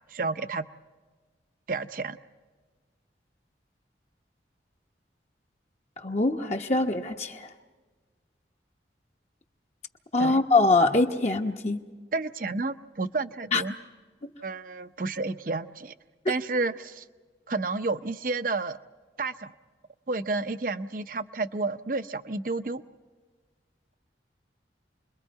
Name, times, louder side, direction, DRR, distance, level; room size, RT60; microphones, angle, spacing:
voice 1, 0.1-0.6 1.7-2.2 10.2-10.4 12.1-13.7 14.4-15.9 16.3-17.0 17.5-18.8 19.2-19.5 20.1-22.8, right 3 dB, 50° right, 11 dB, 0.7 m, -30 dB
voice 2, 6.0-7.5 10.1-11.8 13.5-13.6, left 2 dB, 35° left, 2 dB, 1.1 m, -23 dB
29.0 x 22.0 x 4.7 m, 1.4 s
head